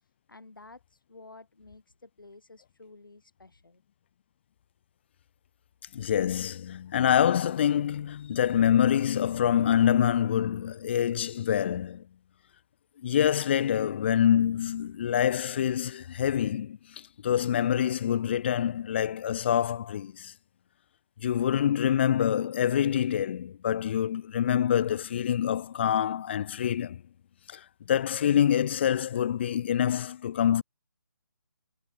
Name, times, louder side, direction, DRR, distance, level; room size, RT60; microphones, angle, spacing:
voice 1, 0.3-3.8, left 3 dB, 85° left, 7.4 m, -52 dB
voice 2, 5.9-12.0 13.0-20.3 21.2-27.0 27.5-30.6, left 9 dB, 35° left, 0.5 m, -26 dB
figure-of-eight pair, 155°, 11 cm